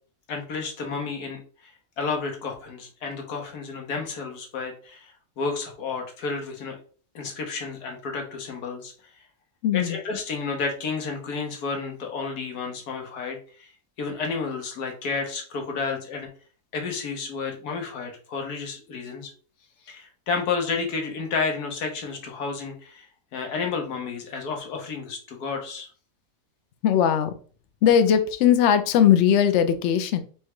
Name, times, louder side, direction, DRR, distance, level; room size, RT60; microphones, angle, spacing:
voice 1, 0.3-1.7 2.0-6.7 7.1-8.9 9.7-13.7 14.0-16.3 16.7-19.3 19.9-23.1 23.3-25.9, left 4 dB, 85° left, 2 dB, 1.6 m, -31 dB
voice 2, 9.6-10.0 26.8-27.3 27.8-30.2, left 9 dB, 65° left, 9 dB, 0.7 m, -19 dB
4.3 x 2.3 x 4.7 m, 0.42 s
omnidirectional pair, 1.6 m